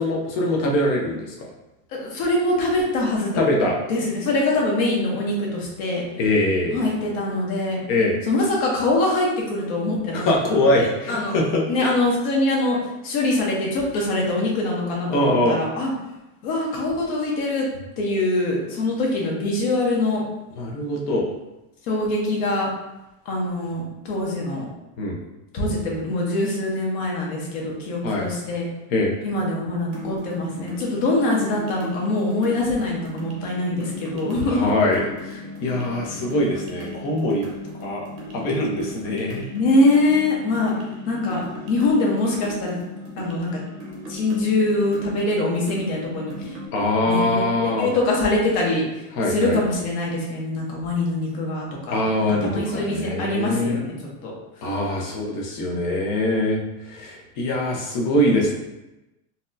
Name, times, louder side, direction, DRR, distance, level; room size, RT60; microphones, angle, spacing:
voice 1, 0.0-1.5 3.4-3.8 6.2-6.8 7.9-8.2 10.1-11.6 15.1-15.6 20.5-21.3 25.0-25.2 28.0-28.3 28.9-29.1 34.5-37.5 37.8-38.1 38.3-39.4 46.7-47.9 49.1-49.6 51.9-53.8 54.6-58.6, left 1 dB, 30° left, -1 dB, 0.5 m, -23 dB
voice 2, 1.9-3.4 3.9-6.0 6.7-7.8 8.3-10.4 10.8-11.3 11.7-12.8 13.0-15.9 16.4-17.7 18.0-20.2 21.9-22.7 23.3-24.7 25.5-28.7 29.2-34.7 39.5-40.7 41.1-41.4 41.7-42.8 43.2-43.5 44.1-46.6 47.1-48.9 49.3-51.9 52.4-53.9 54.2-54.3 55.6-55.9, left 2 dB, 45° left, -2 dB, 0.9 m, -23 dB
sound 1, 29.9-46.7, left 1 dB, 40° right, 0.7 m, -37 dB
4.0 x 2.1 x 2.5 m, 0.96 s
supercardioid pair, 170°, 43 cm